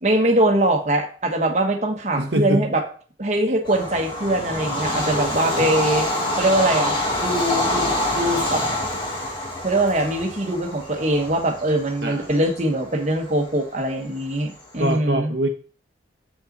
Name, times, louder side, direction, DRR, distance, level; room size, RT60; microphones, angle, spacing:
voice 1, 0.0-2.8 3.2-6.1 6.4-6.9 7.2-8.6 9.6-15.3, right 1 dB, 40° right, 2 dB, 1.2 m, -22 dB
voice 2, 2.2-2.7 5.6-5.7 12.0-12.4 14.8-15.5, right 1 dB, 70° right, 3 dB, 0.9 m, -24 dB
Bird vocalization bird call bird song / Train, 3.7-14.9, left 1 dB, 25° left, 1.7 m, -26 dB
7.7 x 5.6 x 4.0 m, 0.42 s
head